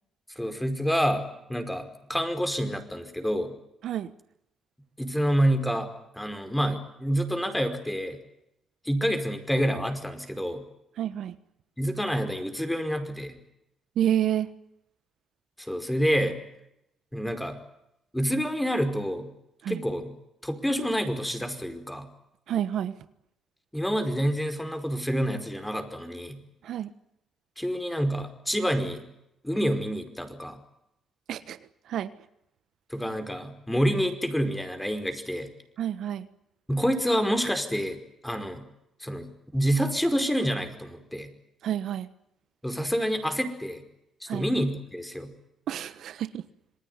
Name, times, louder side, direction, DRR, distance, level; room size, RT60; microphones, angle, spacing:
voice 1, 0.3-3.5 5.0-5.9 6.1-8.2 8.8-10.6 11.8-13.4 15.6-16.4 17.1-17.6 18.1-19.3 19.7-20.1 20.4-22.1 23.7-26.4 27.6-29.0 29.4-30.6 32.9-35.5 36.7-38.0 38.2-38.7 39.0-41.3 42.6-43.8 44.2-45.3, equal, 5° left, 8 dB, 5.1 m, -28 dB
voice 2, 11.0-11.4 13.9-14.5 19.6-19.8 22.5-22.9 26.6-26.9 31.3-31.6 31.8-32.1 35.8-36.3 41.6-42.1 44.3-44.5 45.7-46.4, right 10 dB, 70° right, 12 dB, 1.3 m, -29 dB
27.5 x 20.0 x 9.7 m, 0.82 s
cardioid pair, 90°, 0 cm